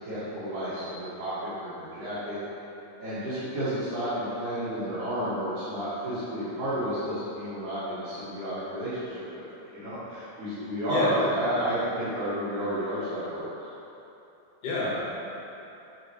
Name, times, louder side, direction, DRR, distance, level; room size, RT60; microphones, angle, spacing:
voice 1, 0.0-2.4 3.0-9.4 9.7-13.5, equal, 75° right, -14 dB, 3.2 m, -31 dB
voice 2, 10.9-11.3 14.6-14.9, left 2 dB, 85° left, -6 dB, 2.9 m, -27 dB
8.7 x 5.4 x 3.0 m, 3.0 s
omnidirectional pair, 3.7 m